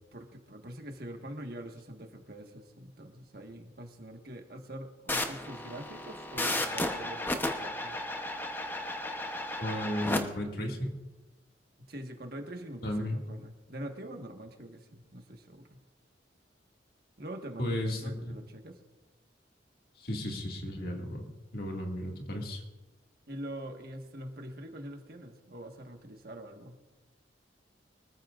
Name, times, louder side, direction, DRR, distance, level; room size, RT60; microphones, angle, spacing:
voice 1, 0.1-8.0 11.9-15.8 17.2-18.8 23.3-26.8, right 1 dB, 55° right, 3 dB, 1.6 m, -44 dB
sound 1, 5.1-10.2, left 1 dB, 10° left, 0.9 m, -34 dB
voice 2, 9.6-10.9 12.8-13.2 17.6-18.3 20.0-21.2 21.5-22.6, left 1 dB, 55° left, 1 dB, 2.2 m, -34 dB
25.0 x 14.0 x 2.6 m, 1.1 s
head